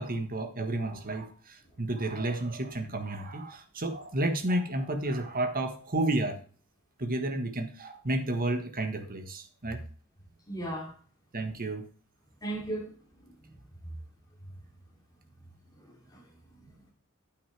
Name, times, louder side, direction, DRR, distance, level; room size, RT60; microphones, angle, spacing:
voice 1, 0.0-6.4 7.0-9.8 11.3-11.9, right 1 dB, 40° right, 1.5 m, -31 dB
voice 2, 10.5-10.9 12.4-13.0 13.2-13.6 15.7-16.2 16.6-16.7, right 1 dB, 20° left, 3.1 m, -37 dB
9.4 x 8.5 x 3.4 m
head